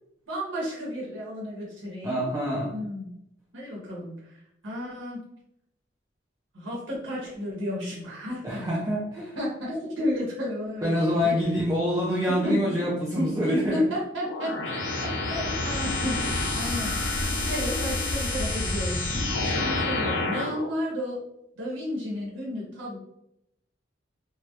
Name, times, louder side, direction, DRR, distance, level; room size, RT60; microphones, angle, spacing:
voice 1, 0.3-2.2 2.7-3.1 3.5-4.4 4.6-5.2 6.5-8.9 9.1-11.3 12.3-17.2 17.4-19.0 19.6-21.2 21.6-23.0, left 1 dB, 85° right, -4 dB, 0.8 m, -32 dB
voice 2, 2.0-2.7 8.4-9.3 10.8-13.8, equal, 15° right, -5 dB, 0.3 m, -26 dB
sound 1, 14.2-20.7, left 2 dB, 75° left, 0.5 m, -28 dB
2.2 x 2.1 x 2.8 m, 0.78 s
head